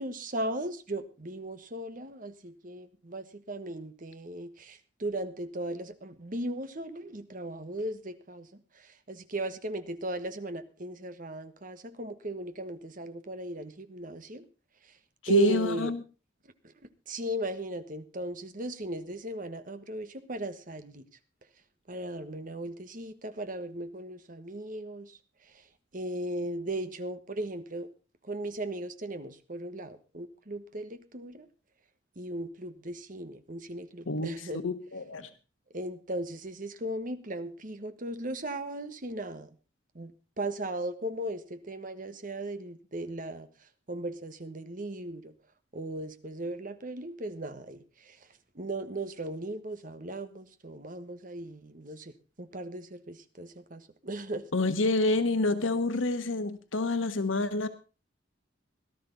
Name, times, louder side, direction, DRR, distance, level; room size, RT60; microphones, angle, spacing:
voice 1, 0.0-14.5 14.8-15.0 15.3-15.9 16.6-16.7 17.1-21.0 21.9-25.6 25.9-27.9 28.2-31.5 32.2-34.6 35.7-39.5 39.9-45.3 45.7-48.3 48.5-54.5, right 2 dB, 45° right, 10 dB, 1.3 m, -37 dB
voice 2, 15.2-16.0 34.1-35.3 54.5-57.7, left 2 dB, 90° left, 9 dB, 1.3 m, -28 dB
18.0 x 12.5 x 3.9 m, 0.33 s
head